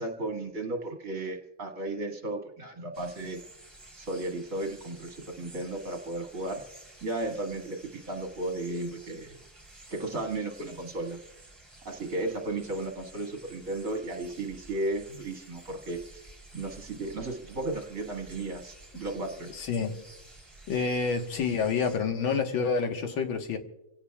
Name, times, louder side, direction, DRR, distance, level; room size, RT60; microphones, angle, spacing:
voice 1, 0.0-3.4 4.0-6.6 7.0-9.4 9.9-11.2 11.8-16.0 16.5-19.5, right 2 dB, 40° right, 3 dB, 2.2 m, -34 dB
sound 1, 2.9-22.0, right 2 dB, 15° right, 3.1 m, -52 dB
voice 2, 19.5-19.9 20.7-23.6, left 5 dB, 70° left, 4 dB, 2.1 m, -28 dB
28.5 x 17.0 x 2.3 m, 0.94 s
omnidirectional pair, 2.3 m